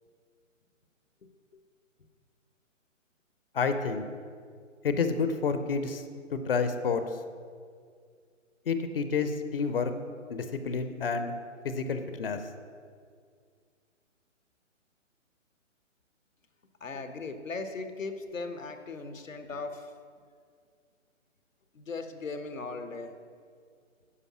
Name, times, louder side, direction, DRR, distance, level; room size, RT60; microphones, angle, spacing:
voice 1, 3.5-4.0 4.8-6.0 6.3-7.0 8.7-9.9 10.3-11.3 11.6-12.4, left 5 dB, 50° left, 9 dB, 0.7 m, -29 dB
voice 2, 16.8-19.9 21.7-23.1, left 3 dB, 85° left, 8 dB, 1.0 m, -38 dB
9.9 x 5.2 x 6.0 m, 2.1 s
figure-of-eight pair, 135°, 38 cm